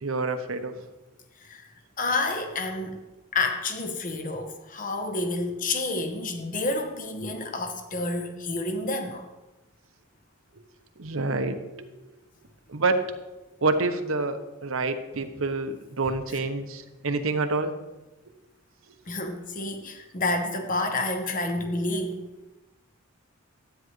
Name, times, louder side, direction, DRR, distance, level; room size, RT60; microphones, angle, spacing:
voice 1, 0.0-0.7 11.0-11.9 12.7-13.0 13.6-17.7, right 3 dB, 85° right, 8 dB, 0.9 m, -27 dB
voice 2, 2.0-3.0 3.3-9.3 16.3-16.4 19.1-22.2, left 2 dB, 40° left, 5 dB, 1.0 m, -29 dB
12.5 x 9.1 x 3.1 m, 1.1 s
head